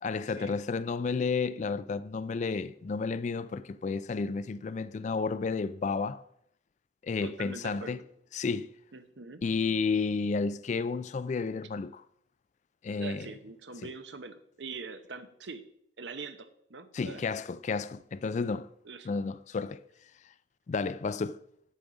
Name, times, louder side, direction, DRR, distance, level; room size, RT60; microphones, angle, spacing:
voice 1, 0.0-6.2 7.0-8.0 8.3-8.7 9.4-12.0 12.8-13.3 16.9-18.7 19.1-19.8 20.7-21.4, left 4 dB, 40° left, 0.3 m, -31 dB
voice 2, 7.2-8.0 8.9-9.4 13.0-15.6 16.0-17.2 18.8-19.1, right 4 dB, 70° right, 0.8 m, -43 dB
8.7 x 7.2 x 5.0 m
head